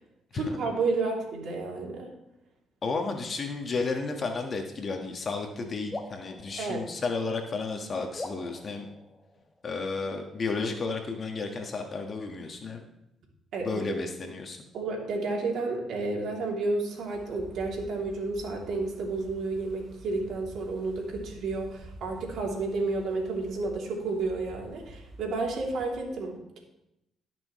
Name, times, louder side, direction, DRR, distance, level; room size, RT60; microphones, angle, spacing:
voice 1, 0.3-2.1 6.6-6.9 13.5-14.0 14.7-26.6, right 3 dB, 75° right, -1 dB, 2.9 m, -31 dB
voice 2, 2.8-8.9 9.6-12.8 13.6-14.6, left 4 dB, 45° left, 4 dB, 1.5 m, -32 dB
sound 1, 5.9-7.6 8.1-9.8, left 2 dB, 20° left, 1.3 m, -43 dB
Wind, 16.9-26.1, right 2 dB, 55° right, 3.7 m, -49 dB
17.5 x 6.1 x 3.2 m, 0.83 s
supercardioid pair, 65°, 0 cm